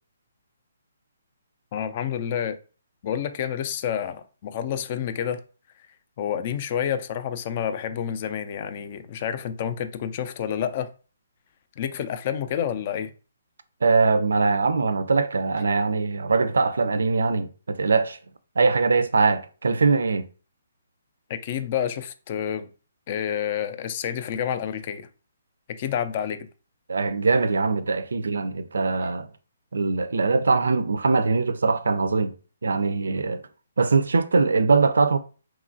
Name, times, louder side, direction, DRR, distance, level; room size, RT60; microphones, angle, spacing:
voice 1, 1.7-2.6 3.0-5.4 6.2-10.9 11.8-13.1 21.3-22.7 23.1-25.1 25.7-26.5, left 9 dB, 40° left, 0.3 m, -29 dB
voice 2, 13.8-18.2 18.6-20.3 26.9-29.3 29.7-32.3 32.6-33.4 33.8-35.2, right 4 dB, 80° right, 0.3 m, -22 dB
3.0 x 2.3 x 2.5 m
hypercardioid pair, 150°, 0 cm